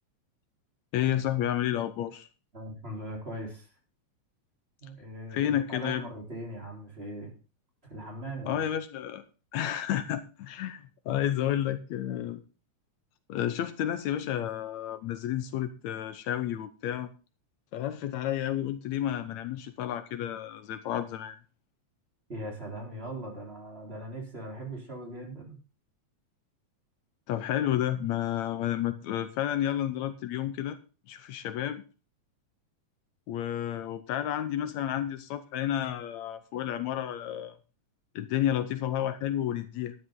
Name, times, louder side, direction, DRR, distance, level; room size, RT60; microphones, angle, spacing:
voice 1, 0.9-2.3 5.3-6.1 8.5-9.2 9.5-12.4 13.3-17.1 17.7-21.4 27.3-30.8 31.1-31.8 33.3-37.5 38.2-39.9, left 11 dB, 75° left, 12 dB, 2.1 m, -31 dB
voice 2, 2.5-3.7 4.8-7.3 7.8-8.7 22.3-25.6, right 1 dB, 20° right, 0 dB, 3.9 m, -40 dB
13.0 x 10.5 x 3.8 m, 0.34 s
omnidirectional pair, 3.3 m